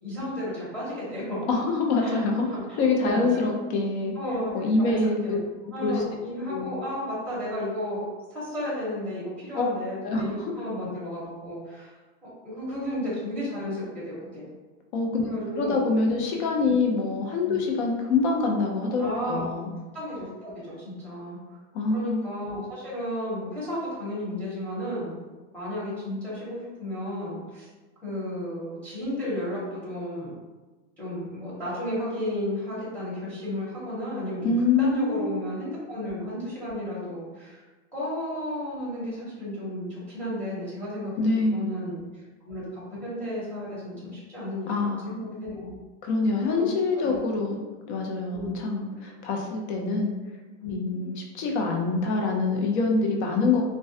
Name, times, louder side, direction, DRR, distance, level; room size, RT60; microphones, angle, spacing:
voice 1, 0.0-1.4 2.0-2.2 2.5-3.5 4.1-4.5 4.8-5.5 5.7-8.0 8.3-11.9 12.2-14.5 15.2-15.8 17.4-17.6 19.0-19.5 19.9-21.4 21.9-25.2 25.5-27.7 28.0-30.3 31.0-37.6 37.9-41.1 41.5-42.0 42.4-45.8 46.2-46.7 47.0-47.2 48.3-48.6 50.6-50.8, left 1 dB, 5° left, -10 dB, 0.7 m, -33 dB
voice 2, 1.5-2.5 2.8-4.1 4.5-5.4 5.8-6.0 6.5-6.7 9.5-9.7 10.0-10.5 14.9-15.3 15.6-19.7 21.7-22.3 34.4-35.3 41.2-41.7 44.7-45.2 46.0-47.6 47.9-50.1 50.7-53.6, left 3 dB, 60° left, 1 dB, 0.6 m, -25 dB
2.3 x 2.1 x 2.6 m, 1.2 s
supercardioid pair, 160°, 37 cm